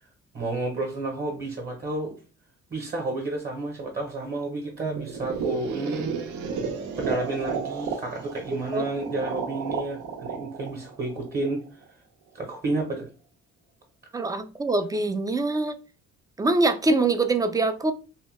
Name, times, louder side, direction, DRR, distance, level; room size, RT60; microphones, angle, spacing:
voice 1, 0.3-2.2 2.7-6.2 6.4-6.6 7.0-11.8 12.3-13.1, right 2 dB, 30° right, 0.8 m, -31 dB
sound 1, 5.0-11.8, right 5 dB, 75° right, 0.6 m, -33 dB
voice 2, 14.1-15.8 16.4-17.9, right 2 dB, 15° right, 0.3 m, -24 dB
2.8 x 2.2 x 3.0 m
cardioid pair, 90°, 30 cm